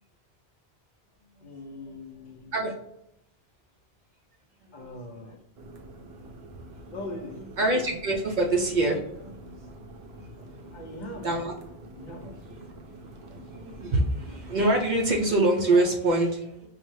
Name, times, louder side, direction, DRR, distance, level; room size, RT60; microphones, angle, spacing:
voice 1, 1.4-2.5 4.7-5.4 6.9-7.6 10.7-11.5 12.0-12.3, left 1 dB, 55° left, 1 dB, 0.6 m, -41 dB
voice 2, 4.6-4.9 5.3-5.4 7.6-9.5 10.1-10.2 10.7-10.8 11.2-11.5 12.2-12.7 13.1-16.7, right 2 dB, 55° right, 1 dB, 0.6 m, -26 dB
sound 1, 5.6-15.5, right 1 dB, 75° right, 0.9 m, -46 dB
5.4 x 2.1 x 3.1 m, 0.79 s
omnidirectional pair, 1.1 m